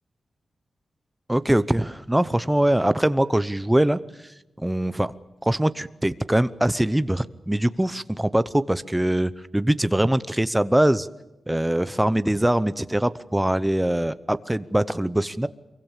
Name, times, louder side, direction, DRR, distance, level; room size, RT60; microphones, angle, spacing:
voice 1, 1.3-4.0 4.6-5.1 5.4-11.1 11.5-15.5, right 1 dB, 5° right, 14 dB, 0.8 m, -22 dB
25.0 x 23.5 x 7.5 m, 0.95 s
wide cardioid pair, 165°, 0 cm